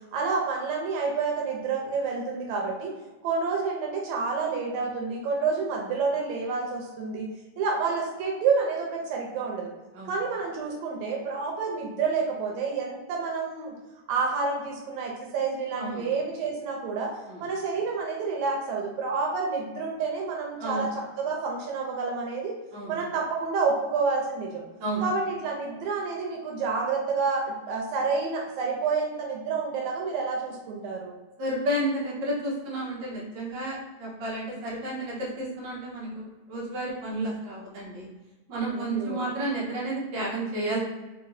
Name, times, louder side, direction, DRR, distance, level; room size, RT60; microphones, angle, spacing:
voice 1, 0.1-2.9 3.2-7.3 7.6-9.7 10.1-13.8 14.1-22.6 22.9-24.6 25.0-31.2 38.7-39.3, right 4 dB, 80° right, 0 dB, 1.9 m, -29 dB
voice 2, 20.6-20.9 22.7-23.0 24.8-25.0 31.4-38.1 38.5-40.8, right 1 dB, 60° right, -5 dB, 1.2 m, -31 dB
4.4 x 2.9 x 2.6 m, 1.2 s
omnidirectional pair, 3.4 m